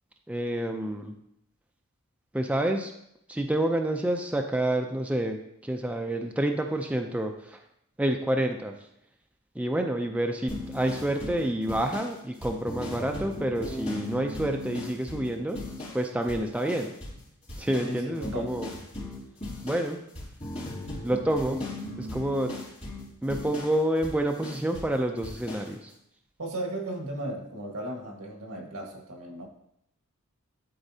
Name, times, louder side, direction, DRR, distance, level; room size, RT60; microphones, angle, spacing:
voice 1, 0.3-1.1 2.3-2.9 3.3-7.6 8.0-8.7 9.6-15.6 15.9-16.9 17.6-18.7 19.6-20.0 21.0-21.6 22.0-22.5 23.2-25.9, right 1 dB, 5° right, 3 dB, 0.4 m, -28 dB
sound 1, 10.5-16.0 16.3-17.2 17.5-24.9 25.2-25.7, left 1 dB, 30° left, 2.7 m, -38 dB
voice 2, 17.8-18.6 26.4-29.5, right 1 dB, 75° right, 0 dB, 1.5 m, -36 dB
11.5 x 4.0 x 2.7 m, 0.76 s
head